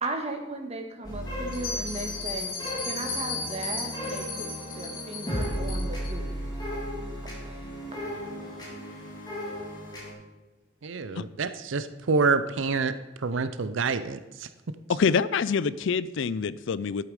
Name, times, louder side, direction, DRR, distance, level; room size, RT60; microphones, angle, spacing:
voice 1, 0.0-2.5 2.8-4.5 4.8-6.4 7.4-7.5, right 2 dB, 30° right, 4 dB, 1.6 m, -36 dB
sound 1, 1.0-10.1, equal, 20° left, 3.1 m, -35 dB
Bell, 1.5-6.1, left 4 dB, 45° left, 3.3 m, -35 dB
voice 2, 10.8-14.5, right 4 dB, 65° right, 12 dB, 0.5 m, -27 dB
voice 3, 14.9-17.0, left 5 dB, 65° left, 18 dB, 0.4 m, -26 dB
11.5 x 8.4 x 4.9 m, 1.1 s
head